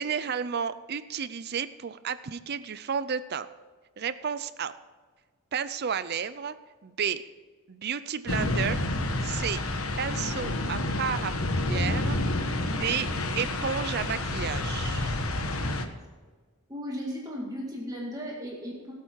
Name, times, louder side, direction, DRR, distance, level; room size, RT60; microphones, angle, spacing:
voice 1, 0.0-3.5 4.0-4.7 5.5-6.5 6.8-7.2 7.7-8.8 9.2-9.6 10.0-13.1 13.3-15.2, right 7 dB, 45° right, 14 dB, 0.5 m, -32 dB
sound 1, 8.3-15.8, left 1 dB, 75° left, 1.2 m, -29 dB
voice 2, 16.7-18.9, equal, 15° right, -2 dB, 2.1 m, -36 dB
18.5 x 8.3 x 4.6 m, 1.5 s
head